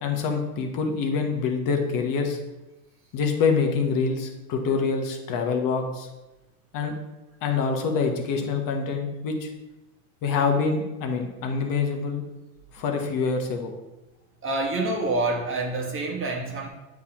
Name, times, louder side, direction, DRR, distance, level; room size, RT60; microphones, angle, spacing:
voice 1, 0.0-2.4 3.1-6.1 6.7-6.9 7.4-9.5 10.2-12.2 12.7-13.7, left 5 dB, 45° left, 3 dB, 1.0 m, -25 dB
voice 2, 14.4-16.7, right 2 dB, 25° right, 0 dB, 1.1 m, -27 dB
8.3 x 4.1 x 2.9 m, 1.0 s
supercardioid pair, 115°, 46 cm